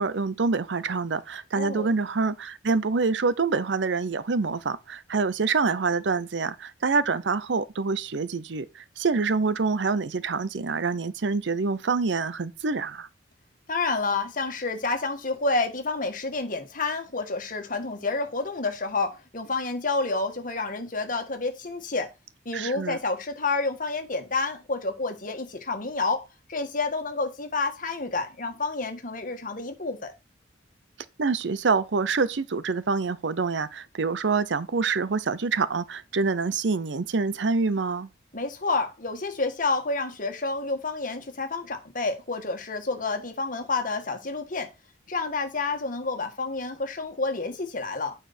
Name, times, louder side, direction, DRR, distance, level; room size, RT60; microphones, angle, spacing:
voice 1, 0.0-13.1 22.5-23.0 31.2-38.1, right 4 dB, 80° right, 0.6 m, -26 dB
voice 2, 1.6-1.9 13.7-22.1 22.4-30.1 38.3-44.7 45.1-48.1, left 3 dB, 50° left, 1.6 m, -29 dB
9.0 x 5.1 x 4.2 m
head